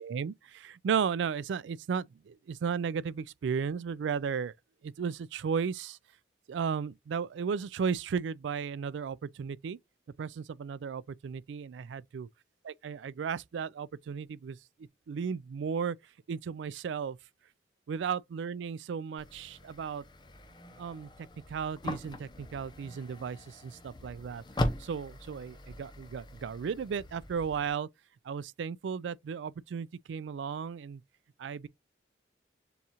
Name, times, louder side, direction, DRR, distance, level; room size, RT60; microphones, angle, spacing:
voice 1, 0.0-4.5 4.8-6.0 6.5-9.8 10.2-12.3 12.6-17.2 17.9-20.0 20.8-21.1 21.5-27.9 28.2-31.0 31.4-31.7, right 6 dB, 80° right, 0.3 m, -35 dB
sound 1, 19.2-27.7, left 1 dB, 25° left, 0.6 m, -40 dB
6.9 x 2.4 x 2.9 m
head